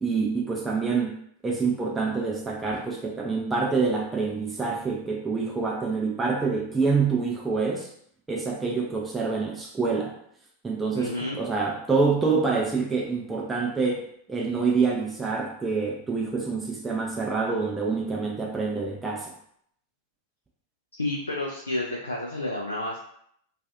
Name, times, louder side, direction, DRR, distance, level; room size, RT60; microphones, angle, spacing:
voice 1, 0.0-1.2 1.4-7.9 8.3-10.1 10.6-19.3, right 4 dB, 10° right, -2 dB, 0.4 m, -26 dB
voice 2, 10.9-11.4 20.9-23.0, left 2 dB, 80° left, -2 dB, 0.3 m, -30 dB
2.4 x 2.3 x 2.4 m, 0.69 s
figure-of-eight pair, 90°, 0 cm